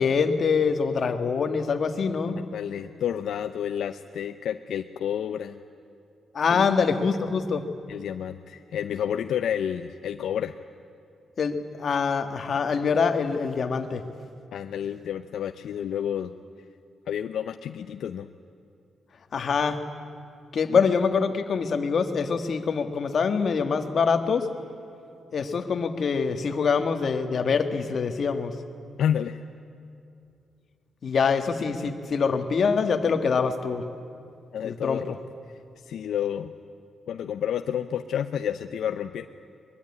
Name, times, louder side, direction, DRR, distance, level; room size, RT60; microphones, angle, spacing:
voice 1, 0.0-2.4 6.3-7.7 11.4-14.0 19.3-19.8 20.5-24.5 25.3-28.6 31.0-33.9 34.6-35.0, left 5 dB, 45° left, 7 dB, 1.7 m, -24 dB
voice 2, 2.5-5.6 6.5-6.7 7.9-10.5 14.5-16.3 17.1-18.3 20.7-20.9 29.0-29.4 34.5-35.2 35.9-36.5 37.1-39.3, left 9 dB, 70° left, 8 dB, 0.7 m, -30 dB
23.0 x 22.0 x 9.8 m, 2.5 s
wide cardioid pair, 170°, 0 cm